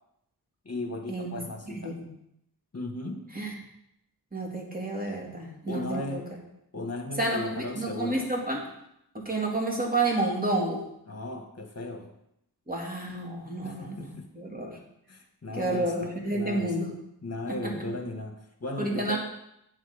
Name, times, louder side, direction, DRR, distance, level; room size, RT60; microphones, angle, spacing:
voice 1, 0.7-1.9 2.7-3.2 5.1-5.4 5.7-6.2 6.7-8.3 11.1-12.1 13.6-14.3 15.1-16.7 17.2-19.2, left 2 dB, 40° left, 3 dB, 1.9 m, -36 dB
voice 2, 1.7-2.1 3.3-3.5 4.3-6.2 7.2-8.6 9.1-10.8 12.7-14.8 15.5-16.9 18.8-19.2, right 2 dB, 20° right, -1 dB, 2.9 m, -30 dB
9.2 x 7.4 x 5.3 m, 0.80 s
wide cardioid pair, 55°, 40 cm